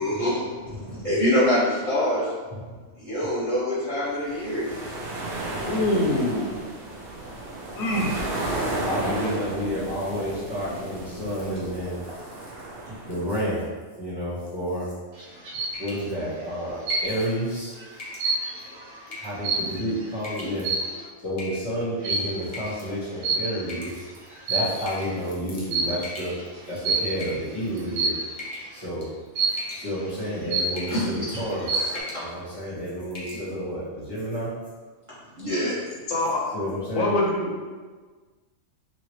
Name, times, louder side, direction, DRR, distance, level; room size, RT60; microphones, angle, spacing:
voice 1, 0.0-2.6 3.0-4.8 12.9-13.0 30.9-31.4 32.1-32.3 35.4-35.8, left 1 dB, 25° right, -11 dB, 0.9 m, -25 dB
sound 1, 4.1-13.4, right 2 dB, 55° right, 0.7 m, -33 dB
voice 2, 5.6-6.6 7.7-8.2 36.1-36.4 37.0-37.6, left 1 dB, 75° left, -2 dB, 1.0 m, -24 dB
voice 3, 8.8-12.0 13.0-13.7 14.0-14.9 15.8-17.8 19.2-20.7 21.2-24.1 24.5-26.3 26.7-28.1 28.7-29.1 29.7-34.5 36.5-37.1, equal, 20° left, -9 dB, 1.0 m, -30 dB
sound 2, 15.2-15.8 16.9-17.4 17.8-20.0 20.6-21.0 22.0-22.4 23.2-23.8 24.3-25.0 25.7-26.1 26.8-27.2 28.0-28.4 29.4-29.8 30.2-30.3 30.5-31.1 31.5-32.0, right 3 dB, 80° right, 1.1 m, -27 dB
sound 3, 15.7-16.1 16.9-17.2 18.0-18.3 19.1-19.4 20.2-20.6 21.4-21.8 22.5-22.9 23.7-24.3 24.9-25.2 26.0-26.7 27.2-27.8 28.4-28.7 29.0-29.3 29.6-30.1 30.8-31.0 31.4-31.6 31.9-32.3 32.6-32.7 33.1-33.4, left 2 dB, 40° left, 0.5 m, -38 dB
2.9 x 2.7 x 3.0 m, 1.4 s
omnidirectional pair, 1.5 m